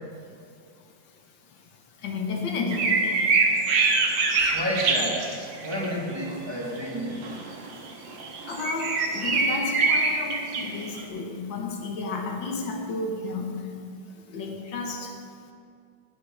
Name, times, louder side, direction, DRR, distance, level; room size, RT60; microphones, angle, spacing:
voice 1, 2.0-3.4 8.1-8.2 8.5-13.8 14.3-15.2, left 3 dB, 80° left, 3 dB, 1.9 m, -32 dB
sound 1, 2.7-5.9 6.2-6.3 7.2-11.0, right 3 dB, 90° right, 2.0 m, -24 dB
voice 2, 4.5-5.3 5.6-7.2, equal, 15° right, -5 dB, 2.0 m, -30 dB
10.0 x 9.7 x 6.2 m, 2.3 s
omnidirectional pair, 2.0 m